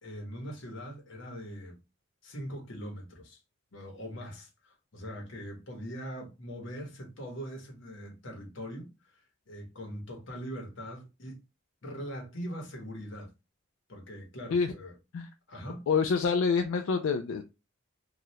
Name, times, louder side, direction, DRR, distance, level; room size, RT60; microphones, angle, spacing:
voice 1, 0.0-1.8 2.2-3.4 3.7-9.2 9.5-11.4 11.8-13.3 13.9-14.9 15.5-15.9, equal, 65° left, 1.0 m, -41 dB
voice 2, 15.9-17.4, left 5 dB, 85° left, 0.4 m, -27 dB
2.7 x 2.4 x 3.1 m
head